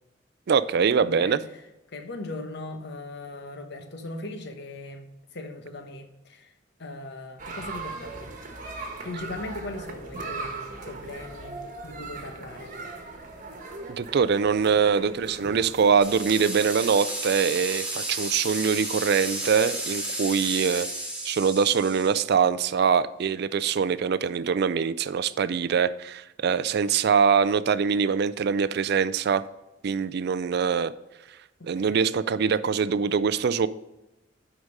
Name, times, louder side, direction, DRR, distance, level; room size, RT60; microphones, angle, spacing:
voice 1, 0.5-1.4 13.9-20.9 21.2-29.4 29.8-30.9 31.7-33.7, right 6 dB, 60° right, 16 dB, 0.4 m, -23 dB
voice 2, 1.0-1.4 1.9-6.5 6.8-8.3 9.0-12.7 31.6-32.1, left 2 dB, 60° left, 6 dB, 1.1 m, -39 dB
sound 1, 7.4-16.4, right 3 dB, 40° right, 1.3 m, -39 dB
sound 2, 16.0-22.1, right 1 dB, 5° right, 2.0 m, -32 dB
8.0 x 5.1 x 5.3 m, 0.96 s
head